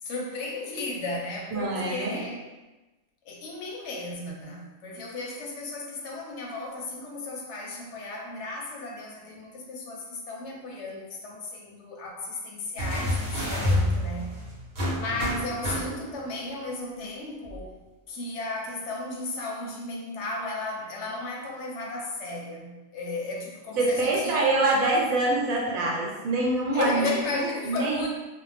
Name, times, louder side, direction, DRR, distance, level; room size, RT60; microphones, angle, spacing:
voice 1, 0.0-2.5 3.2-14.3 15.0-17.7 18.1-24.4 26.7-28.1, left 2 dB, 65° left, -1 dB, 0.8 m, -34 dB
voice 2, 1.5-2.2 23.8-28.1, right 2 dB, 80° right, -2 dB, 1.1 m, -25 dB
sound 1, 12.8-16.3 17.5-17.6, left 1 dB, 55° right, 1.0 m, -28 dB
2.5 x 2.1 x 3.2 m, 1.1 s
omnidirectional pair, 1.4 m